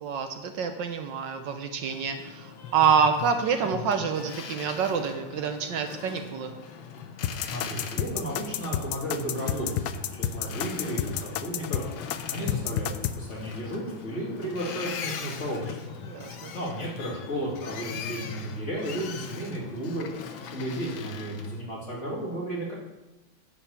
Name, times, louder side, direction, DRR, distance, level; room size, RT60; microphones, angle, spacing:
voice 1, 0.0-6.5 16.0-16.5, right 6 dB, 70° right, 6 dB, 1.4 m, -27 dB
Boat Water vehicle, 1.8-21.6, left 6 dB, 70° left, 1.5 m, -40 dB
sound 1, 7.2-13.2, left 11 dB, 85° left, 0.9 m, -30 dB
voice 2, 7.3-11.8 12.3-16.0 16.5-20.1 20.5-22.7, right 1 dB, 35° left, -5 dB, 2.6 m, -33 dB
10.0 x 4.7 x 7.1 m, 1.0 s
omnidirectional pair, 2.3 m